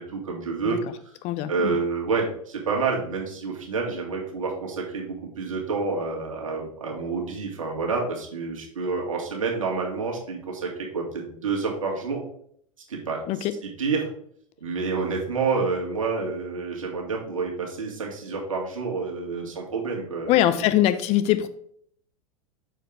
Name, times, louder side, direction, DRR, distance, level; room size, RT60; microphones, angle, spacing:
voice 1, 0.0-1.1 1.5-12.2 12.9-13.2 13.6-14.1 14.6-20.6, right 4 dB, 75° right, 0 dB, 1.9 m, -28 dB
voice 2, 1.2-1.8 13.3-13.5 20.3-21.5, left 13 dB, 40° left, 12 dB, 0.6 m, -22 dB
6.3 x 4.6 x 3.7 m, 0.65 s
figure-of-eight pair, 95°, 17 cm